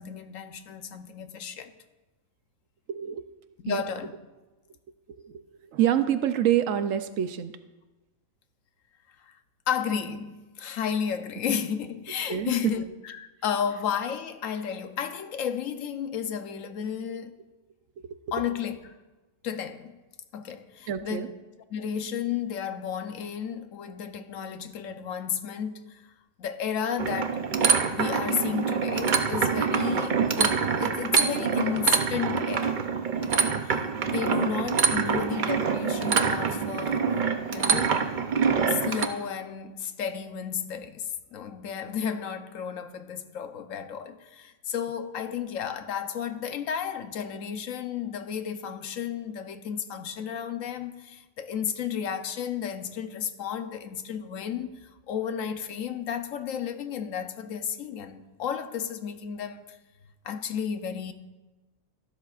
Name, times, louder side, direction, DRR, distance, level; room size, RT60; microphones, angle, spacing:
voice 1, 0.0-1.7 3.6-4.1 9.2-9.3 9.7-17.3 18.3-18.8 19.4-20.0 20.3-21.3 21.7-26.0 26.4-27.5 27.9-32.8 33.2-33.8 34.0-37.2 37.5-38.0 38.7-59.8 60.2-61.1, left 8 dB, 85° left, 1.1 m, -33 dB
voice 2, 2.9-3.2 3.7-3.8 5.2-5.4 5.7-7.6 12.3-12.7 18.1-18.2 20.9-21.3 35.0-35.3, right 10 dB, 80° right, 1.0 m, -26 dB
sound 1, 27.0-39.1, right 5 dB, 45° right, 0.7 m, -25 dB
13.5 x 12.5 x 2.4 m
omnidirectional pair, 1.3 m